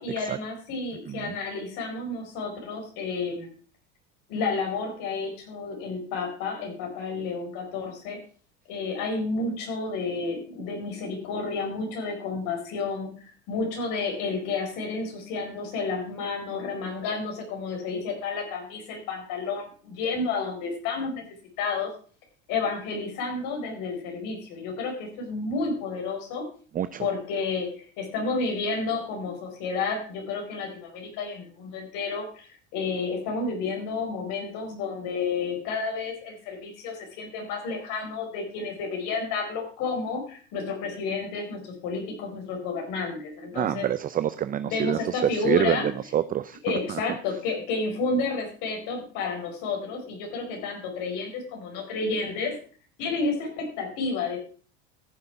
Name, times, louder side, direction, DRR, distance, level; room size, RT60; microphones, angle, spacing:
voice 1, 0.0-3.5 4.3-8.2 8.7-21.2 21.6-21.9 22.5-26.5 27.0-43.9 44.6-45.9 46.6-52.6 53.0-54.4, left 4 dB, 65° left, 2 dB, 4.6 m, -31 dB
voice 2, 26.7-27.1 43.5-45.2 45.4-45.8 46.1-47.0, right 10 dB, 25° right, 14 dB, 0.5 m, -27 dB
14.0 x 6.6 x 5.9 m, 0.41 s
supercardioid pair, 105°, 34 cm